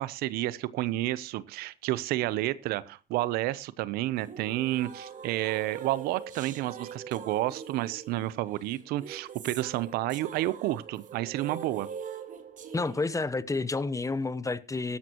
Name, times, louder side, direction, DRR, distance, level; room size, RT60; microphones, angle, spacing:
voice 1, 0.0-11.9, right 16 dB, 80° right, 0.8 m, -30 dB
sound 1, 4.2-13.2, right 7 dB, 55° right, 1.9 m, -43 dB
voice 2, 12.7-15.0, left 3 dB, 20° left, 0.9 m, -30 dB
16.5 x 12.5 x 3.0 m
supercardioid pair, 65°, 16 cm